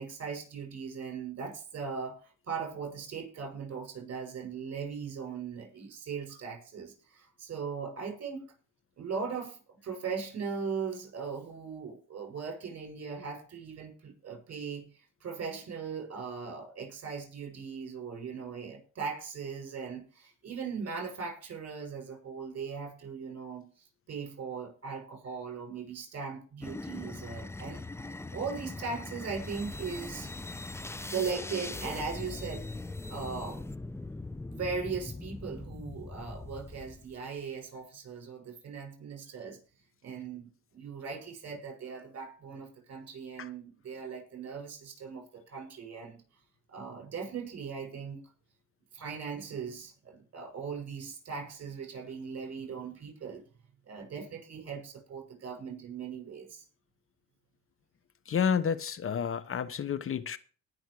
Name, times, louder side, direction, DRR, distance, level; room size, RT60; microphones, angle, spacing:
voice 1, 0.0-8.5 9.0-30.3 31.1-32.7 33.1-33.7 34.5-39.6 40.0-40.4 40.7-46.2 46.7-48.3 48.9-53.5 53.9-56.6, right 5 dB, 55° right, 6.4 m, -39 dB
sound 1, 26.6-37.2, left 2 dB, 10° left, 0.7 m, -41 dB
voice 2, 58.3-60.4, left 7 dB, 45° left, 0.9 m, -30 dB
19.0 x 6.3 x 4.8 m
cardioid pair, 90°, 30 cm